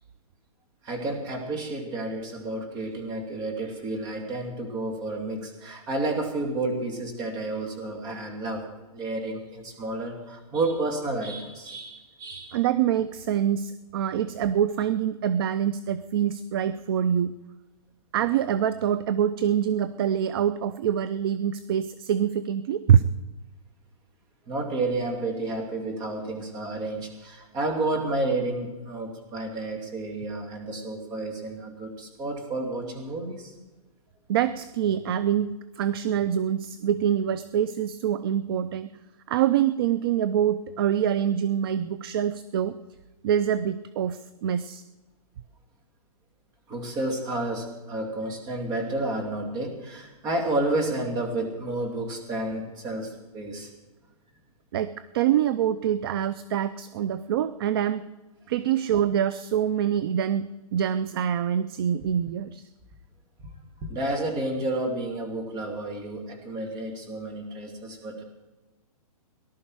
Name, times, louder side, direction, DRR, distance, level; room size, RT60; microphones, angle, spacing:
voice 1, 0.8-8.6 8.9-12.6 24.5-33.5 46.7-53.7 63.8-68.2, right 2 dB, 20° right, 2 dB, 2.5 m, -31 dB
voice 2, 12.5-17.3 18.1-23.0 34.3-35.5 35.8-38.9 39.3-42.8 43.2-44.8 54.7-58.0 58.5-60.5 60.7-62.7, right 9 dB, 40° right, 14 dB, 0.5 m, -25 dB
18.5 x 11.5 x 4.7 m, 1.2 s
hypercardioid pair, 155°, 20 cm